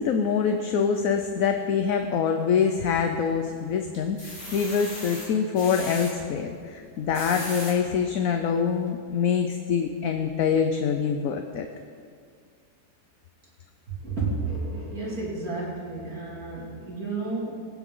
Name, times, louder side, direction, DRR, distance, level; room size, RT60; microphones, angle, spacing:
voice 1, 0.0-11.7, left 6 dB, 65° left, 5 dB, 1.1 m, -25 dB
sound 1, 2.9-3.5 3.9-6.1 6.9-7.8 8.4-8.5 8.8-8.9, left 1 dB, 30° left, 3.3 m, -38 dB
voice 2, 14.0-17.6, right 3 dB, 65° right, -5 dB, 3.0 m, -31 dB
22.0 x 9.3 x 3.8 m, 2.2 s
omnidirectional pair, 1.7 m